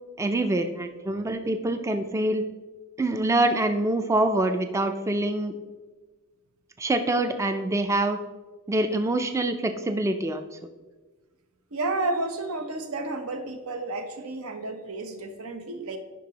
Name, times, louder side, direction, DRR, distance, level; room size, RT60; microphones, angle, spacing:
voice 1, 0.2-2.5 3.0-5.5 6.8-8.2 8.7-10.4, right 2 dB, 15° right, 8 dB, 0.3 m, -25 dB
voice 2, 11.7-16.0, right 2 dB, 85° right, 7 dB, 0.8 m, -31 dB
10.0 x 5.3 x 2.8 m, 1.3 s
head